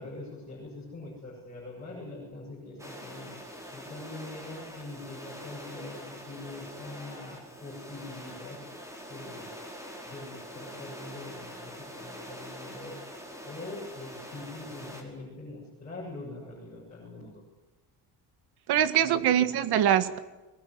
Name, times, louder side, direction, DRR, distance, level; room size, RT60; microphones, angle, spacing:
voice 1, 0.0-3.3 3.7-8.6 9.1-9.5 10.0-12.9 13.4-17.4 18.8-19.6, left 2 dB, 20° left, -4 dB, 7.9 m, -43 dB
sound 1, 2.8-15.0, equal, 5° right, 5.2 m, -44 dB
voice 2, 18.7-20.2, right 10 dB, 65° right, 11 dB, 1.8 m, -23 dB
24.0 x 21.5 x 9.5 m, 1.1 s
cardioid pair, 170°, 41 cm